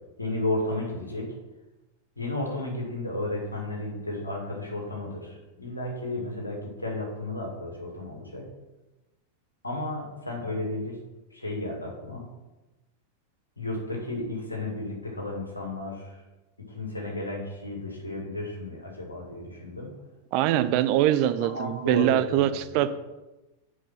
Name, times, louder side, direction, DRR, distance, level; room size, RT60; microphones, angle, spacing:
voice 1, 0.2-1.3 2.2-8.5 9.6-11.0 11.3-12.2 13.6-16.2 16.7-19.9 21.4-22.4 22.7-22.8, left 2 dB, 80° left, -1 dB, 2.2 m, -33 dB
voice 2, 20.3-22.9, right 12 dB, 45° right, 12 dB, 0.5 m, -23 dB
7.8 x 4.9 x 5.5 m, 1.1 s
figure-of-eight pair, 90°, 0 cm